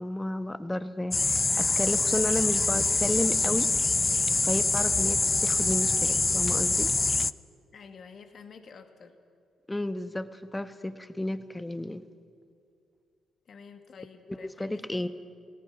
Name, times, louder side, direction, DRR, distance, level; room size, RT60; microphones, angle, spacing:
voice 1, 0.0-3.7 4.4-6.9 9.7-12.0 14.6-15.1, left 1 dB, 15° left, 11 dB, 1.3 m, -32 dB
sound 1, 1.1-7.3, left 3 dB, 30° left, 0.5 m, -25 dB
voice 2, 7.7-9.2 13.5-15.1, left 5 dB, 55° left, 6 dB, 2.2 m, -49 dB
29.0 x 18.0 x 6.1 m, 2.3 s
hypercardioid pair, 40°, 0 cm